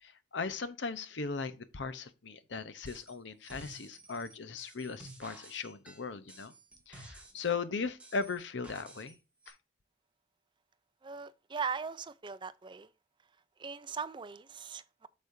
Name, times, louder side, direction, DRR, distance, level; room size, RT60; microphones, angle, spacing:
voice 1, 0.0-6.5 6.9-9.1 9.5-9.6, left 4 dB, 85° left, 0.8 m, -38 dB
sound 1, 2.9-3.2 3.4-7.6 8.0-9.2 9.4-9.5, right 2 dB, 5° right, 2.1 m, -52 dB
voice 2, 11.0-12.9 13.6-15.1, right 5 dB, 25° right, 0.4 m, -39 dB
8.4 x 6.3 x 2.6 m
head